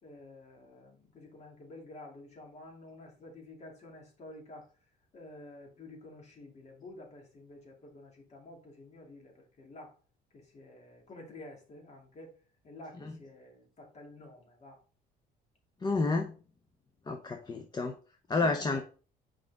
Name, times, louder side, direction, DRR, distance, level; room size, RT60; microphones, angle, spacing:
voice 1, 0.0-4.7 5.1-10.0 10.3-12.3 12.6-14.8 18.4-18.8, left 2 dB, 40° left, 1 dB, 2.6 m, -50 dB
voice 2, 15.8-16.3 17.1-17.9 18.3-18.8, left 3 dB, 25° left, 5 dB, 0.7 m, -30 dB
6.2 x 5.0 x 3.6 m, 0.37 s
cardioid pair, 110°, 17 cm